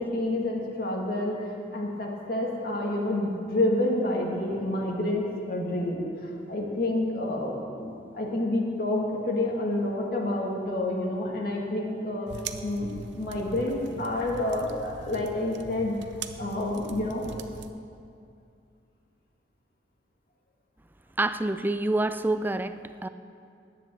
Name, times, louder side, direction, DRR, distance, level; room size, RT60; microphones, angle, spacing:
voice 1, 0.0-1.4 1.7-12.3 12.6-12.9 13.2-15.9 16.4-17.3, left 1 dB, 55° left, -1 dB, 1.8 m, -28 dB
sound 1, 12.3-17.7, right 5 dB, 80° right, 0.6 m, -41 dB
voice 2, 21.2-23.1, right 2 dB, 10° right, 11 dB, 0.4 m, -27 dB
11.0 x 9.4 x 7.5 m, 2.5 s
head